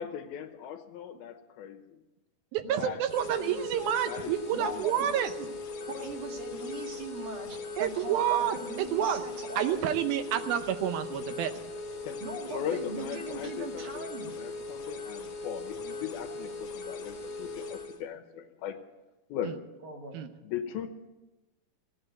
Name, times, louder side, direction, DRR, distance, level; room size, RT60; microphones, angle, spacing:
voice 1, 0.0-2.0 2.8-3.0 3.4-4.3 4.6-5.0 12.0-12.2 12.5-14.1 14.4-18.8 19.3-19.5 20.4-20.9, left 9 dB, 80° left, 7 dB, 2.9 m, -39 dB
voice 2, 2.5-5.3 7.8-9.2 9.6-11.5 20.1-20.3, right 10 dB, 80° right, 9 dB, 2.6 m, -29 dB
sound 1, 3.1-18.0, left 3 dB, 55° left, 1.9 m, -40 dB
voice 3, 4.5-5.5 5.9-9.7 12.2-14.3 19.8-20.2, right 2 dB, 60° right, 0 dB, 3.3 m, -40 dB
17.0 x 8.6 x 8.2 m, 1.1 s
omnidirectional pair, 4.3 m